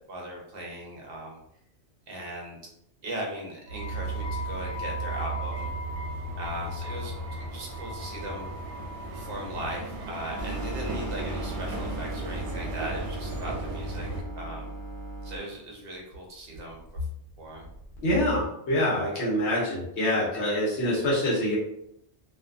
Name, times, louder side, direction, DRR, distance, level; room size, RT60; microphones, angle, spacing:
voice 1, 0.1-1.4 2.1-2.6 3.0-5.7 6.4-8.5 9.1-14.1 14.4-14.7 15.2-16.8 17.4-17.7, right 1 dB, 60° right, -1 dB, 0.9 m, -38 dB
sound 1, 3.7-14.2, right 2 dB, 85° right, 0.9 m, -35 dB
sound 2, 10.4-15.4, right 2 dB, 30° left, 0.7 m, -37 dB
voice 2, 18.0-21.6, left 1 dB, 75° left, -6 dB, 1.1 m, -25 dB
2.6 x 2.2 x 2.5 m, 0.76 s
omnidirectional pair, 1.2 m